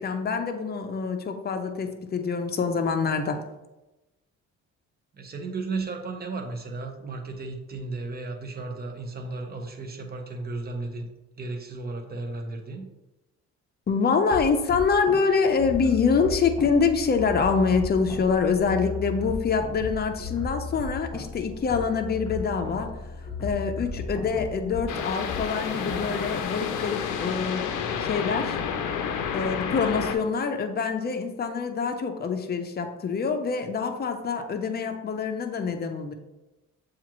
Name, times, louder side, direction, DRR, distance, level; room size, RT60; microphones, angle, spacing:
voice 1, 0.0-3.4 13.9-22.9 23.4-27.7 28.0-28.6 29.3-36.1, left 5 dB, 35° left, 5 dB, 0.6 m, -25 dB
voice 2, 5.1-11.1 11.4-12.9, right 3 dB, 30° right, 3 dB, 0.8 m, -34 dB
sound 1, 14.3-26.4, left 3 dB, 15° left, 1.1 m, -36 dB
sound 2, 24.9-30.1, left 7 dB, 85° left, 0.6 m, -30 dB
7.1 x 2.5 x 3.0 m, 1.0 s
cardioid pair, 90°, 30 cm